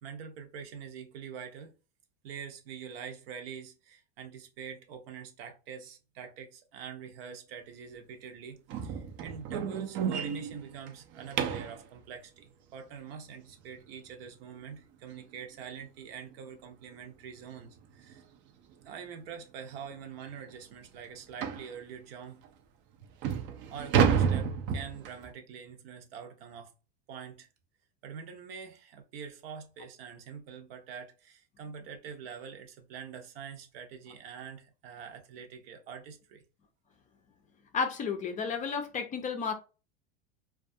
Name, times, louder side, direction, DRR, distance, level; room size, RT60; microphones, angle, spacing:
voice 1, 0.0-1.7 2.2-18.2 18.8-22.4 23.7-26.7 27.1-27.5 28.0-36.4, right 7 dB, 70° right, 0.7 m, -45 dB
sound 1, 8.7-11.8 14.6-14.7 15.2-15.4 15.7-15.8 16.3-16.4 17.5-17.6 18.0-18.2 18.8-18.9 19.3-19.4 19.9-20.0 21.4-21.7 22.4-22.5 23.0-25.3, right 7 dB, 40° right, 0.4 m, -30 dB
voice 2, 37.7-39.5, left 5 dB, 25° left, 0.4 m, -32 dB
2.3 x 2.3 x 2.5 m
supercardioid pair, 115°, 30 cm